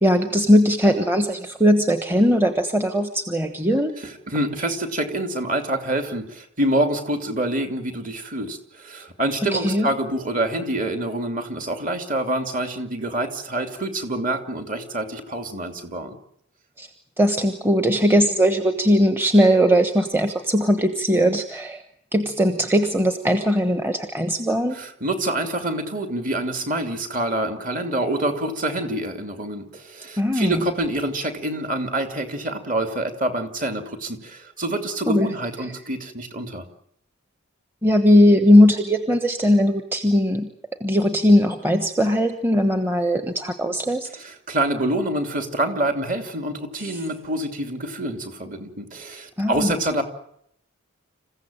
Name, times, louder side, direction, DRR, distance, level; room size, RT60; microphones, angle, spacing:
voice 1, 0.0-3.9 9.4-9.9 16.8-16.9 17.2-21.8 22.1-24.8 30.2-30.6 35.1-35.3 35.6-35.7 37.8-40.5 40.8-44.1 46.8-47.0 49.4-49.7, equal, 10° right, 7 dB, 1.1 m, -19 dB
voice 2, 4.0-16.2 24.7-36.6 44.1-50.0, right 1 dB, 35° right, 6 dB, 2.8 m, -26 dB
27.5 x 15.5 x 9.0 m, 0.73 s
head